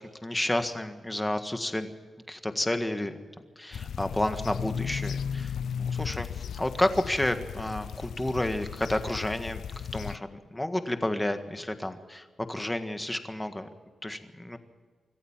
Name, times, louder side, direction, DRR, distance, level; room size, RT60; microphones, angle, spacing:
voice 1, 0.2-1.9 2.3-3.2 3.6-6.3 6.6-9.6 9.9-13.7 14.0-14.6, left 1 dB, 10° left, 8 dB, 1.7 m, -30 dB
sound 1, 3.7-10.2, left 7 dB, 90° left, 0.6 m, -35 dB
25.5 x 14.5 x 7.4 m, 1.5 s
wide cardioid pair, 120°, 0 cm